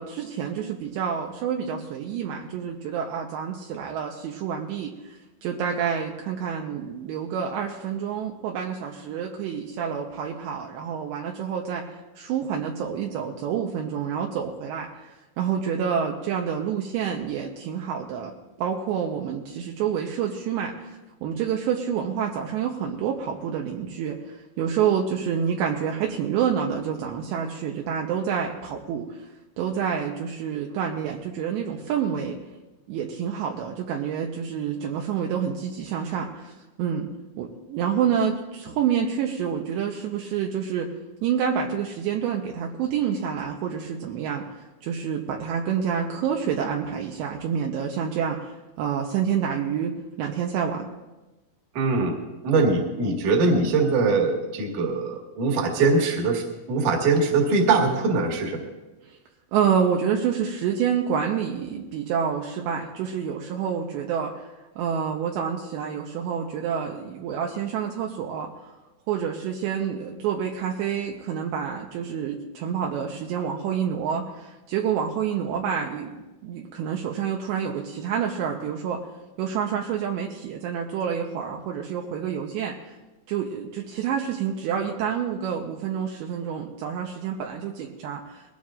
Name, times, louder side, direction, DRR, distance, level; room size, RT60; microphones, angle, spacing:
voice 1, 0.0-11.9 12.2-29.3 29.6-32.4 32.9-36.5 36.8-37.1 37.4-40.9 41.2-50.9 59.0-59.2 59.5-64.5 64.8-68.7 69.1-79.0 79.4-83.0 83.3-88.4, right 7 dB, 80° right, 1 dB, 2.9 m, -28 dB
voice 2, 51.7-52.2 52.4-58.6, right 3 dB, 55° right, 1 dB, 2.7 m, -22 dB
21.5 x 17.0 x 2.5 m, 1.1 s
omnidirectional pair, 5.5 m